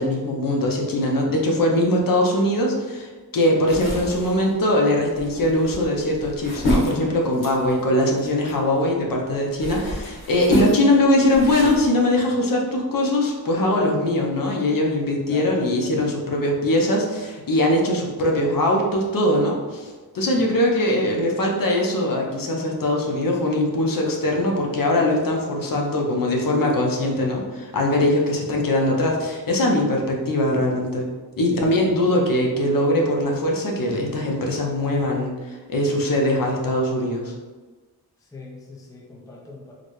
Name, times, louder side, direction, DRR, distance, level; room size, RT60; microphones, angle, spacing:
voice 1, 0.0-31.1 31.4-37.3, left 1 dB, 55° left, 0 dB, 0.7 m, -21 dB
sound 1, 3.7-8.9 9.3-11.9, left 1 dB, 75° left, 1.2 m, -28 dB
voice 2, 31.4-31.7 38.3-39.7, left 1 dB, 10° left, -1 dB, 0.4 m, -40 dB
4.0 x 2.1 x 3.1 m, 1.3 s
wide cardioid pair, 125°, 39 cm